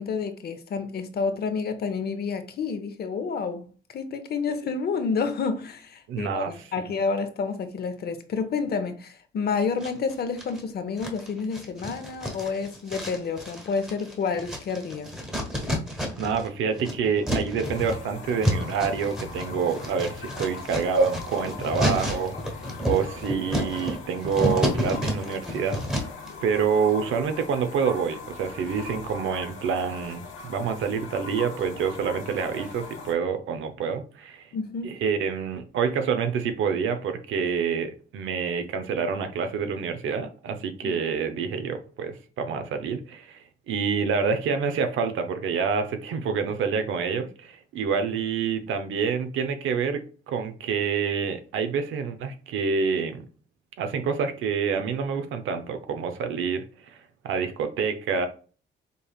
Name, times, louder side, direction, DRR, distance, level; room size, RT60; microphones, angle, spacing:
voice 1, 0.0-3.6 3.9-15.1 34.5-35.0 40.8-41.0, left 5 dB, 55° left, 0.7 m, -29 dB
voice 2, 6.1-6.9 16.2-22.4 22.8-26.0 26.4-34.5 34.8-53.2 53.8-57.0 57.2-58.3, right 6 dB, 80° right, 0.7 m, -27 dB
sound 1, 9.8-10.6 11.0-16.5 16.7-26.3, equal, 5° right, 1.3 m, -30 dB
sound 2, 17.6-33.1, left 5 dB, 80° left, 1.0 m, -41 dB
5.2 x 3.2 x 2.4 m
cardioid pair, 90°, 20 cm